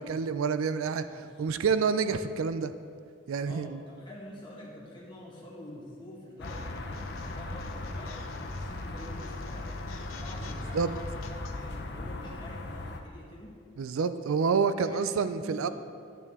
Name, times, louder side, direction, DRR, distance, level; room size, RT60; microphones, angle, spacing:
voice 1, 0.0-1.0 1.4-2.7 3.3-3.7 10.7-10.9 13.8-15.7, right 5 dB, 80° right, 11 dB, 0.4 m, -28 dB
voice 2, 1.0-1.3 3.4-8.1 8.5-9.7 9.9-13.5 14.8-15.7, left 1 dB, 20° left, -4 dB, 1.6 m, -47 dB
sound 1, 6.4-11.6, left 3 dB, 80° left, 0.8 m, -48 dB
sound 2, 6.4-13.0, left 2 dB, 50° left, 0.7 m, -38 dB
10.5 x 9.3 x 3.6 m, 2.2 s
head